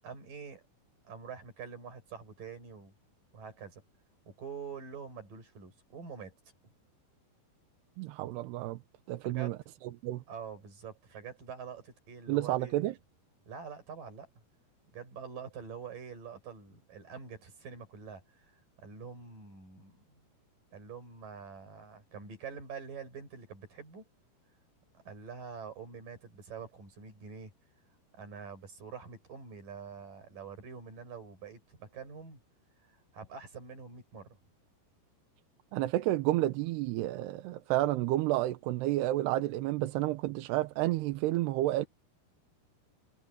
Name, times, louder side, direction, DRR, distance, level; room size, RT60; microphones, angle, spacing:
voice 1, 0.0-0.6 1.0-2.9 3.3-3.8 4.3-6.3 9.2-9.5 10.3-12.8 13.5-14.3 14.9-20.3 20.7-24.1 25.1-27.5 28.1-32.4 32.9-34.4, right 6 dB, 55° right, 7.4 m, -46 dB
voice 2, 8.0-8.8 9.1-9.6 10.0-10.2 12.3-12.9 35.7-41.9, right 16 dB, 85° right, 2.9 m, -30 dB
omnidirectional pair, 4.8 m